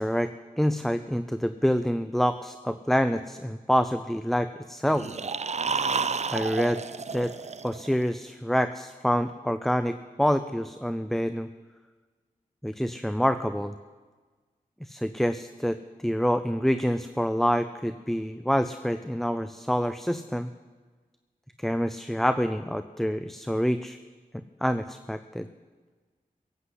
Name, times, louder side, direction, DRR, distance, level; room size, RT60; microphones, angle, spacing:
voice 1, 0.0-5.1 6.3-6.8 7.1-7.3 7.6-11.5 12.6-13.7 14.8-15.8 16.0-20.5 21.6-24.0 24.6-25.5, equal, ahead, 11 dB, 0.5 m, -27 dB
growling zombie, 4.9-8.0, right 5 dB, 45° right, 0.5 m, -31 dB
17.0 x 8.0 x 8.1 m, 1.4 s
wide cardioid pair, 60°, 15 cm